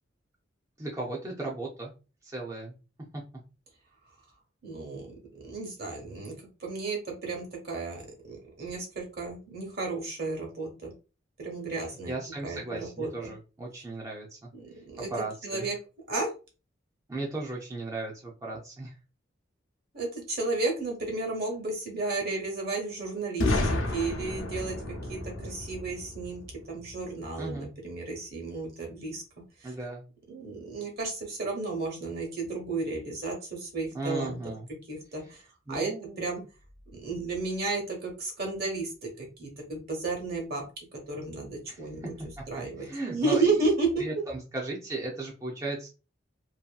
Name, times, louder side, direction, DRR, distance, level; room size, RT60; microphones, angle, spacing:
voice 1, 0.8-1.9 2.2-2.7 3.1-3.3 12.1-14.5 15.0-15.7 17.1-18.9 27.4-27.7 29.6-30.0 33.9-34.7 35.2-35.3 35.7-36.3 41.7-43.7 44.0-45.9, right 2 dB, 15° right, -3 dB, 0.5 m, -36 dB
voice 2, 4.6-5.1 5.4-6.3 6.6-8.0 8.3-10.9 11.4-12.1 12.4-13.3 14.5-15.1 15.4-15.8 16.1-16.3 19.9-26.4 26.7-29.2 29.6-29.7 30.3-34.4 34.9-35.4 35.7-35.9 36.2-36.4 36.9-42.0 42.5-44.0, right 3 dB, 55° right, 1 dB, 1.1 m, -33 dB
Boom, 23.4-27.2, left 2 dB, 85° left, 0.6 m, -31 dB
2.7 x 2.6 x 2.2 m, 0.32 s
head